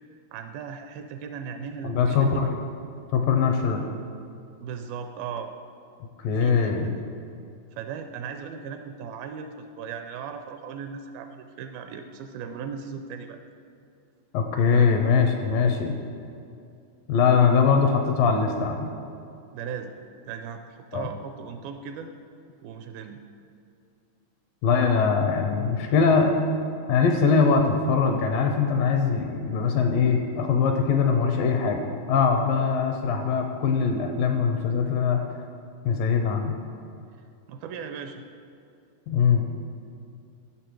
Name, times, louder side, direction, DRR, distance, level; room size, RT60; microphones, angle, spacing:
voice 1, 0.3-2.5 4.6-5.5 6.4-6.8 7.7-13.4 14.7-14.9 19.5-19.9 20.2-22.1 22.6-23.2 37.5-38.2, right 6 dB, 80° right, 6 dB, 2.3 m, -37 dB
voice 2, 1.8-2.5 3.1-3.8 6.2-6.9 14.3-15.9 17.1-18.9 20.9-21.1 24.6-26.4 26.9-35.2 35.8-36.5 39.1-39.5, left 5 dB, 75° left, 4 dB, 2.2 m, -22 dB
14.0 x 6.7 x 4.6 m, 2.5 s
omnidirectional pair, 4.5 m